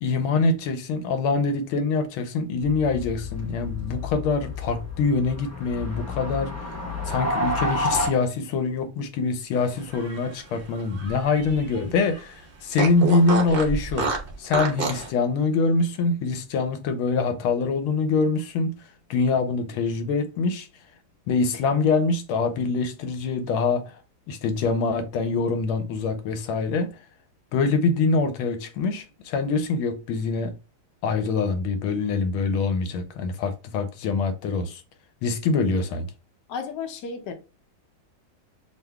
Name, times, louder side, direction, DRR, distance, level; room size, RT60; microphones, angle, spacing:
voice 1, 0.0-6.5 7.0-14.1 14.4-18.8 19.1-20.7 21.3-23.9 24.3-26.9 27.5-30.5 31.0-34.8 35.2-36.1, left 4 dB, 90° left, 1.5 m, -24 dB
sound 1, 2.6-8.1, left 2 dB, 15° left, 0.6 m, -30 dB
Fart, 9.8-11.8 12.1-12.2 12.7-15.1, right 4 dB, 70° right, 0.5 m, -29 dB
voice 2, 36.5-37.3, left 5 dB, 65° left, 1.3 m, -33 dB
6.7 x 2.4 x 2.2 m
omnidirectional pair, 2.3 m